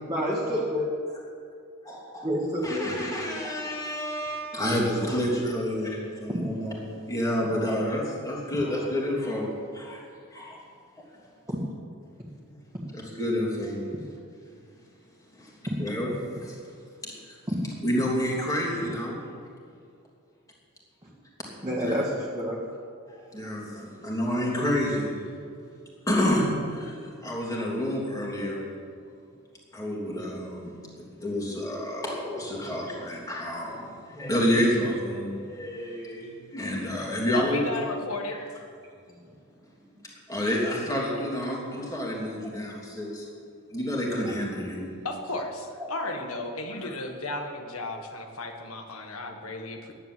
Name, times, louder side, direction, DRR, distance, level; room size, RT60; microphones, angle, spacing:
voice 1, 0.1-0.9 2.2-2.9 6.3-6.4 11.5-11.6 15.7-15.8 17.5-17.6 21.0-21.1 21.6-22.6 26.8-26.9 45.8-45.9, equal, 15° right, -6 dB, 2.0 m, -28 dB
voice 2, 1.8-2.3 2.6-10.0 10.3-10.6 12.9-13.8 15.3-16.6 17.0-17.4 17.8-19.3 21.8-21.9 23.1-25.1 26.1-28.7 29.7-30.8 31.2-37.7 40.3-43.3 43.7-44.9, equal, 15° left, -3 dB, 2.9 m, -29 dB
voice 3, 37.3-38.4 45.0-49.9, left 2 dB, 70° left, 4 dB, 1.6 m, -34 dB
10.5 x 10.5 x 7.7 m, 2.4 s
head